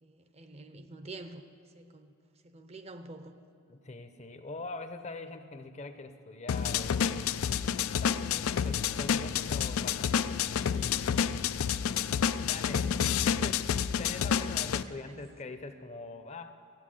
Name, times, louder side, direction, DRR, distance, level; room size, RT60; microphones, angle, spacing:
voice 1, 0.0-2.1 2.4-3.3 14.9-15.3, right 2 dB, 30° right, 9 dB, 0.6 m, -47 dB
voice 2, 3.7-7.3 8.0-11.4 12.4-13.0 13.3-13.7 14.0-16.6, left 2 dB, 35° left, 9 dB, 0.7 m, -43 dB
sound 1, 6.5-14.8, left 8 dB, 85° left, 0.4 m, -29 dB
15.0 x 9.2 x 7.6 m, 2.4 s
head